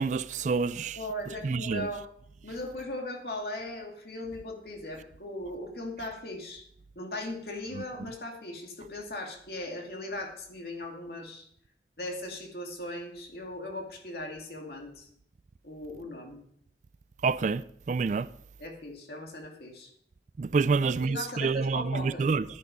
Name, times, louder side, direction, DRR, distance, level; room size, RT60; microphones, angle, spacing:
voice 1, 0.0-1.0 1.4-1.9 17.2-17.6 17.9-18.3 20.4-22.4, right 4 dB, 45° right, 0.3 m, -27 dB
voice 2, 1.0-2.1 2.4-6.6 7.0-11.5 12.0-15.1 15.6-16.4 18.6-19.9 20.7-22.3, left 1 dB, 60° left, 2.4 m, -38 dB
11.0 x 10.5 x 5.3 m
head